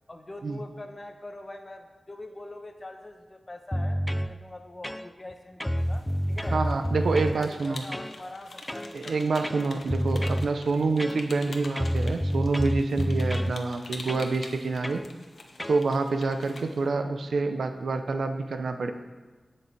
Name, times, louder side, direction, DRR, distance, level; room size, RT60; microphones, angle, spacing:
voice 1, 0.1-6.6 7.0-9.2, left 2 dB, 30° left, 5 dB, 1.1 m, -43 dB
sound 1, 3.7-4.3 4.8-5.3 5.6-7.4 7.9-8.2 8.7-8.9 9.4-10.5 11.0-11.5 11.8-13.6 14.1-14.3 14.8-15.1 15.6-15.8, equal, 10° left, 0.4 m, -29 dB
sound 2, 5.8-16.9, left 3 dB, 70° left, 1.2 m, -46 dB
voice 2, 6.5-7.8 8.9-15.0 15.7-18.9, right 3 dB, 90° right, 7 dB, 0.8 m, -27 dB
17.5 x 6.4 x 4.6 m, 1.3 s
wide cardioid pair, 100°, 0 cm